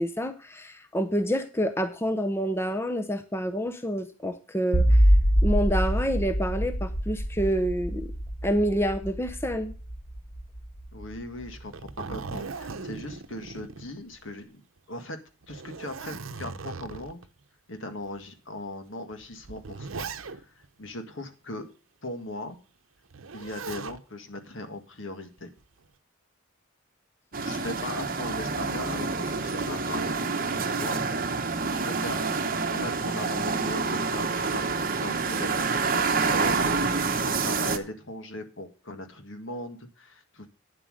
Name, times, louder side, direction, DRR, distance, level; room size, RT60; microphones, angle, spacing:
voice 1, 0.0-5.0 5.4-8.1 8.4-9.7, equal, 10° left, 7 dB, 0.7 m, -28 dB
sound 1, 4.7-11.9, equal, 40° left, 1.3 m, -25 dB
voice 2, 10.9-14.6 14.9-15.2 15.5-17.2 17.7-21.7 22.0-22.6 23.3-25.5 27.4-31.0 31.8-32.2 32.7-40.5, left 1 dB, 70° left, 7 dB, 1.7 m, -39 dB
Zipper (clothing), 11.5-14.4 14.8-14.9 15.4-17.3 18.0-18.1 19.1-20.7 23.1-24.0 25.4-25.9, right 4 dB, 85° right, 0.8 m, -39 dB
sound 2, 27.3-37.8, right 4 dB, 45° right, 1.0 m, -27 dB
9.6 x 7.7 x 6.4 m, 0.35 s
head